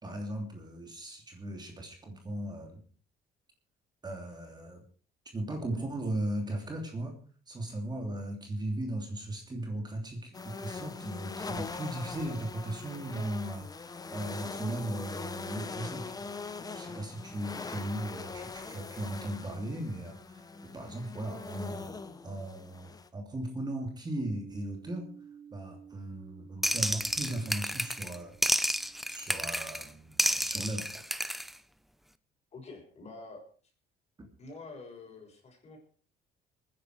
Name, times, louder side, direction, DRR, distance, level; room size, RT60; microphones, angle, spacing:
voice 1, 0.0-2.8 4.0-4.8 5.3-7.2 7.5-22.0 22.2-25.1 25.5-28.3 29.1-31.0, right 1 dB, 25° right, 3 dB, 3.0 m, -37 dB
sound 1, 10.3-23.1, left 4 dB, 20° left, 1.2 m, -42 dB
sound 2, 24.1-29.6, right 8 dB, 60° right, 1.8 m, -53 dB
sound 3, 26.6-28.2 28.4-29.9 30.2-31.5, equal, ahead, 0.6 m, -30 dB
voice 2, 32.5-33.5 34.4-35.8, left 3 dB, 40° left, 2 dB, 6.2 m, -47 dB
22.5 x 10.0 x 4.6 m, 0.41 s
cardioid pair, 110°, 17 cm